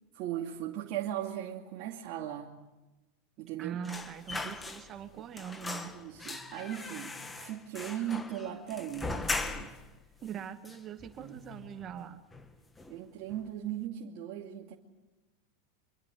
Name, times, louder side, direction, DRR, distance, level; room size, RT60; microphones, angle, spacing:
voice 1, 0.1-2.5 3.4-3.8 5.9-9.7 11.2-11.5 12.9-14.7, right 11 dB, 55° right, -1 dB, 2.5 m, -38 dB
voice 2, 3.6-6.0 10.2-12.2, right 8 dB, 35° right, 7 dB, 1.9 m, -42 dB
sound 1, 3.8-5.1 5.4-9.9 10.2-10.3 10.6-11.5 11.8-12.0 12.3-13.0 13.3-13.5, left 3 dB, 15° left, 1.9 m, -39 dB
25.5 x 23.0 x 8.6 m, 1.1 s
hypercardioid pair, 110°, 0 cm